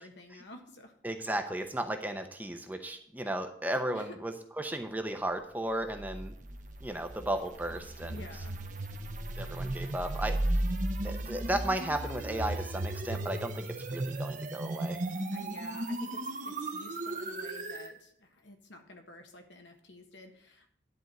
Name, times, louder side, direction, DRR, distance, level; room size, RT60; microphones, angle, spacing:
voice 1, 0.0-1.0 3.9-4.1 8.1-8.6 15.3-20.7, left 1 dB, 70° left, 5 dB, 1.4 m, -50 dB
voice 2, 1.0-6.3 6.8-8.2 9.4-10.6 11.0-15.0, right 1 dB, 10° right, 5 dB, 0.7 m, -35 dB
sound 1, 5.8-17.9, right 1 dB, 40° right, 0.9 m, -35 dB
10.5 x 4.5 x 8.0 m, 0.62 s
head